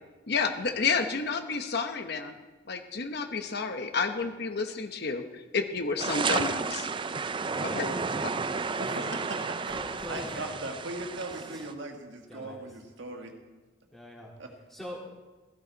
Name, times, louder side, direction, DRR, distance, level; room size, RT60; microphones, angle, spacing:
voice 1, 0.3-2.3 2.7-6.9 7.7-7.9, left 4 dB, 55° left, 6 dB, 1.0 m, -30 dB
sound 1, 6.0-11.7, right 4 dB, 25° right, 0.4 m, -32 dB
voice 2, 7.5-8.4 8.9-9.1 9.7-10.5 11.4-11.7 12.3-12.6 13.9-14.3 14.7-15.0, left 1 dB, ahead, -4 dB, 3.5 m, -43 dB
voice 3, 8.5-9.4 9.7-9.8 10.1-13.3 14.4-14.5, right 2 dB, 65° right, 3 dB, 1.7 m, -39 dB
16.5 x 14.0 x 4.1 m, 1.2 s
head